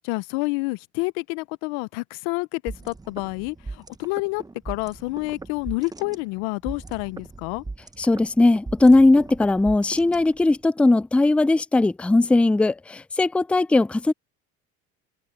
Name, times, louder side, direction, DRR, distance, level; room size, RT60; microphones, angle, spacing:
voice 1, 0.0-7.6, left 26 dB, 80° left, 0.7 m, -29 dB
sound 1, 2.7-10.6, right 3 dB, 10° right, 1.1 m, -39 dB
voice 2, 8.0-14.1, left 2 dB, 5° left, 0.4 m, -19 dB
supercardioid pair, 95°, 31 cm